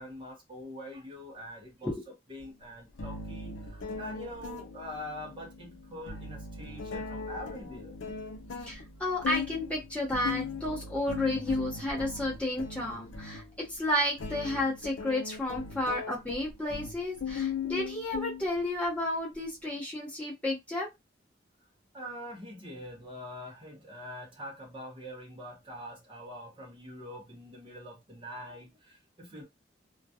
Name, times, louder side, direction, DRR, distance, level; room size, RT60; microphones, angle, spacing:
voice 1, 0.0-1.9 2.3-8.0 21.9-29.4, equal, 25° right, 0.7 m, -44 dB
sound 1, 2.4-2.5 3.0-18.9, left 5 dB, 90° left, 0.5 m, -39 dB
voice 2, 8.6-20.9, left 1 dB, 5° left, 0.8 m, -32 dB
2.3 x 2.2 x 2.7 m
head